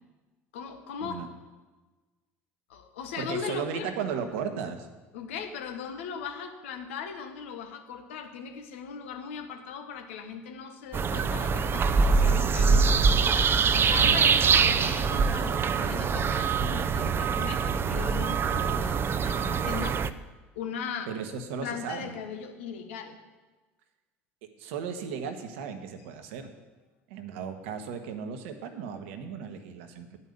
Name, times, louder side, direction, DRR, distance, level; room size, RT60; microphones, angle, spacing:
voice 1, 0.5-1.2 2.7-3.9 5.1-20.0 20.5-21.1 21.6-23.2, left 6 dB, 80° left, 5 dB, 1.3 m, -38 dB
voice 2, 3.2-4.9 21.1-22.2 24.6-26.5 27.1-30.2, right 6 dB, 75° right, 7 dB, 1.2 m, -35 dB
sound 1, 10.9-20.1, right 5 dB, 35° right, 0.6 m, -24 dB
10.0 x 5.6 x 7.9 m, 1.2 s
hypercardioid pair, 75°, 7 cm